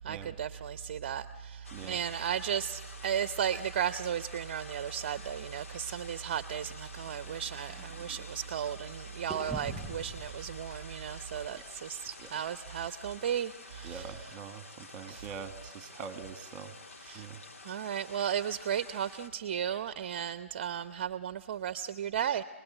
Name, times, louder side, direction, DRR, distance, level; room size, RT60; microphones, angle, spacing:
voice 1, 0.0-14.1 15.1-15.3 17.1-17.3 17.6-22.4, right 9 dB, 40° right, 12 dB, 0.7 m, -35 dB
sound 1, 1.6-19.3, left 3 dB, 75° left, 2.4 m, -50 dB
sound 2, 6.6-8.9 9.3-13.3, right 2 dB, ahead, 7.6 m, -47 dB
voice 2, 13.8-16.7 17.1-17.4, right 6 dB, 20° right, 9 dB, 1.6 m, -44 dB
28.5 x 20.0 x 9.1 m, 1.3 s
hypercardioid pair, 155°, 7 cm